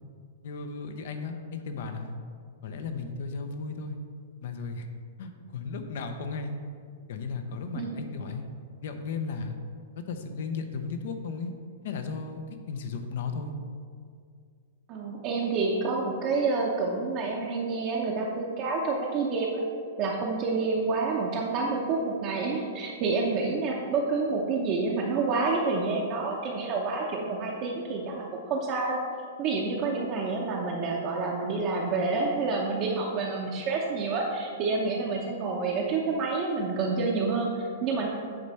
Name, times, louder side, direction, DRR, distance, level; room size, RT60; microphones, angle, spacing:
voice 1, 0.4-2.2 2.6-4.0 4.4-4.9 5.2-6.6 7.1-8.5 8.8-9.6 10.1-11.5 11.8-12.4 12.7-13.5, left 4 dB, 60° left, 7 dB, 0.7 m, -35 dB
voice 2, 14.9-19.6 20.0-29.0 29.4-38.1, right 3 dB, 35° right, -3 dB, 0.7 m, -28 dB
8.7 x 3.2 x 5.6 m, 2.2 s
hypercardioid pair, 155°, 0 cm